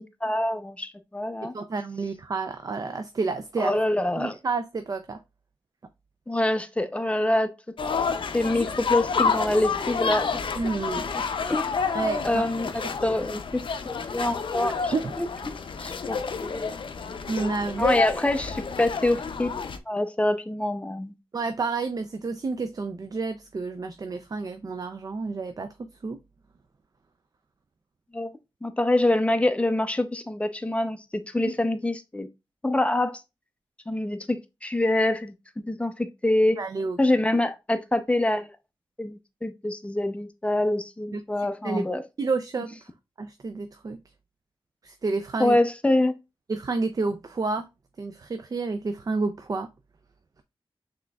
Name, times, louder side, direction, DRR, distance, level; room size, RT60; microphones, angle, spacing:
voice 1, 0.0-1.5 3.6-4.4 6.3-7.5 8.3-10.4 11.1-11.2 11.5-11.7 12.2-15.3 15.8-16.7 17.8-19.5 19.9-21.1 28.1-28.3 28.6-32.3 32.6-33.2 33.9-36.7 37.0-38.5 39.0-42.0 45.4-46.1, left 1 dB, 15° left, 0.5 m, -25 dB
voice 2, 1.5-3.8 4.2-5.2 10.5-11.1 11.9-12.5 14.9-15.1 17.3-18.0 21.3-25.7 26.0-26.2 31.4-31.5 36.6-37.0 41.1-41.2 41.6-41.9 42.2-42.8 43.2-44.0 44.8-45.6 46.5-47.7 48.0-49.7, right 4 dB, 45° right, 0.4 m, -29 dB
sound 1, 7.8-19.8, left 5 dB, 70° left, 0.5 m, -29 dB
6.0 x 3.6 x 2.3 m
wide cardioid pair, 100°, 9 cm